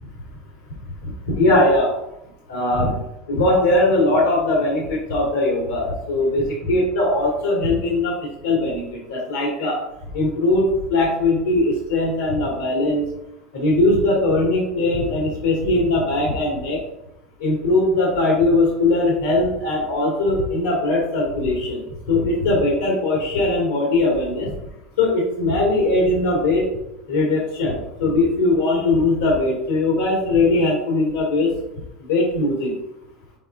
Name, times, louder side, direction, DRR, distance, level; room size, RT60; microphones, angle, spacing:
voice 1, 1.0-1.9 2.5-2.9 3.3-9.8 10.1-13.1 13.5-16.8 17.4-21.8 22.1-24.5 25.0-26.6 27.1-31.5 32.1-32.7, left 2 dB, 90° left, -3 dB, 2.1 m, -20 dB
5.8 x 4.5 x 3.8 m, 0.85 s
hypercardioid pair, 90°, 0 cm